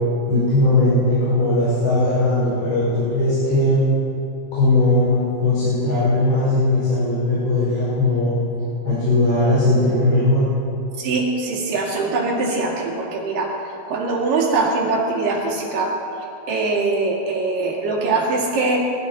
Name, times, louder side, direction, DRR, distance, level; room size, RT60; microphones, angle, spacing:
voice 1, 0.3-3.8 4.5-8.4 8.8-10.5, left 2 dB, 85° left, -10 dB, 6.8 m, -18 dB
voice 2, 11.0-13.6 13.9-16.0 16.5-18.8, right 3 dB, 65° right, -2 dB, 4.0 m, -22 dB
22.0 x 15.0 x 4.4 m, 2.7 s
omnidirectional pair, 4.4 m